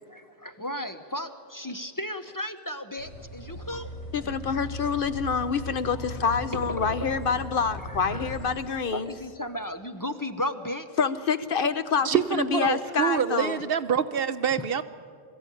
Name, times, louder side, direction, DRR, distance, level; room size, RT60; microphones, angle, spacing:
voice 1, 0.1-3.9 5.9-6.0 6.5-7.2 7.9-8.3 8.9-10.9, left 1 dB, 20° left, 0.7 m, -35 dB
sound 1, 3.0-8.5, equal, 80° left, 4.0 m, -38 dB
voice 2, 4.1-9.1 11.0-13.7, left 6 dB, 55° left, 0.9 m, -27 dB
voice 3, 12.0-14.8, right 7 dB, 60° right, 0.9 m, -26 dB
22.0 x 14.5 x 9.8 m
omnidirectional pair, 1.2 m